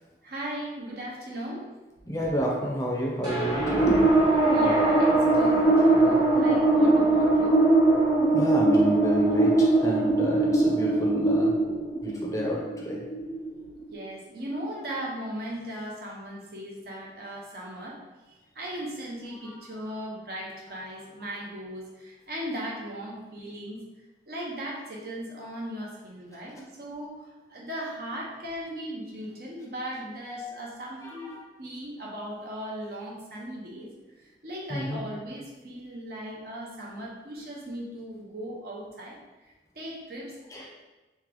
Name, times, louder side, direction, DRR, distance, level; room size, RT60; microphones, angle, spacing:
voice 1, 0.2-1.7 4.5-7.6 13.9-18.0 18.3-23.8 24.3-33.9 34.4-39.2 39.7-40.4, equal, 55° right, -3 dB, 0.9 m, -37 dB
voice 2, 2.1-4.1 8.3-11.6 12.0-13.0 19.4-19.6 31.0-31.4 34.7-35.0 40.5-40.7, equal, 20° left, -3 dB, 0.6 m, -30 dB
sound 1, 3.2-13.9, right 2 dB, 20° right, 1.2 m, -21 dB
3.3 x 3.1 x 3.8 m, 1.1 s
head